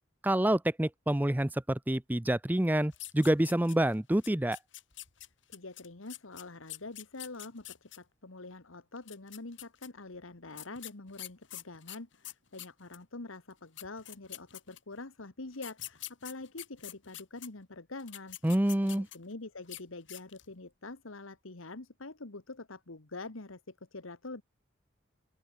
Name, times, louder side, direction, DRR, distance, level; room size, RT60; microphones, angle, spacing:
voice 1, 0.2-4.6 18.4-19.1, right 1 dB, 10° right, 0.5 m, -27 dB
sound 1, 2.9-3.9 4.2-8.0 9.0-9.9 10.6-13.0 13.5-13.6 13.8-15.0 15.5-17.5 18.0-19.3 19.6-19.8 20.1-20.5, left 15 dB, 70° left, 3.1 m, -45 dB
voice 2, 5.5-18.4 18.8-24.4, left 3 dB, 90° left, 1.6 m, -45 dB
open air
head